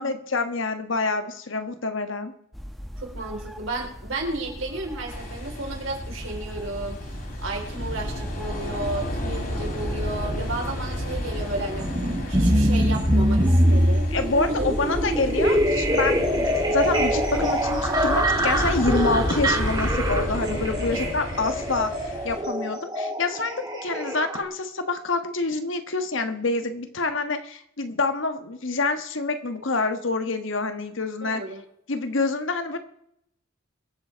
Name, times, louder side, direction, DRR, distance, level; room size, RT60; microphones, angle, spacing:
voice 1, 0.0-2.3 14.1-31.4 31.9-32.8, left 3 dB, 65° left, 8 dB, 1.3 m, -27 dB
sound 1, 2.5-20.2, equal, ahead, 1.4 m, -38 dB
voice 2, 3.0-11.9 12.3-14.0 14.5-14.7 20.9-21.0 31.2-31.6, right 2 dB, 70° right, 0 dB, 4.3 m, -33 dB
sound 2, 5.1-22.4, left 1 dB, 45° left, 3.0 m, -32 dB
sound 3, 11.8-24.4, equal, 20° right, 2.1 m, -23 dB
23.0 x 7.6 x 4.6 m, 0.75 s
head